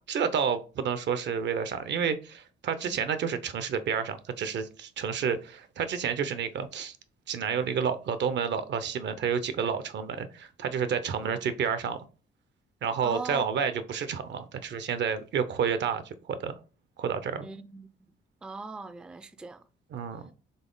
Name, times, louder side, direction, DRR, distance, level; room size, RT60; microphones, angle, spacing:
voice 1, 0.1-7.0 7.3-12.0 12.8-16.5 17.0-17.5 19.9-20.3, right 7 dB, 60° right, 0.6 m, -30 dB
voice 2, 13.0-13.5 17.4-17.9 18.4-19.6, right 3 dB, 5° right, 0.3 m, -40 dB
4.1 x 3.2 x 3.7 m
cardioid pair, 90°, 20 cm